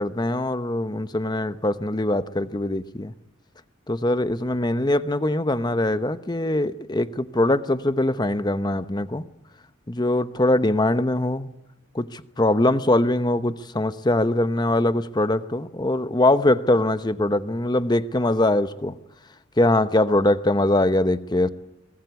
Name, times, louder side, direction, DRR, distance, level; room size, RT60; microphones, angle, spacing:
voice 1, 0.0-3.1 3.9-9.2 9.9-11.5 11.9-18.9 19.6-21.5, left 1 dB, 20° left, 12 dB, 0.9 m, -22 dB
23.5 x 19.5 x 8.3 m, 0.91 s
head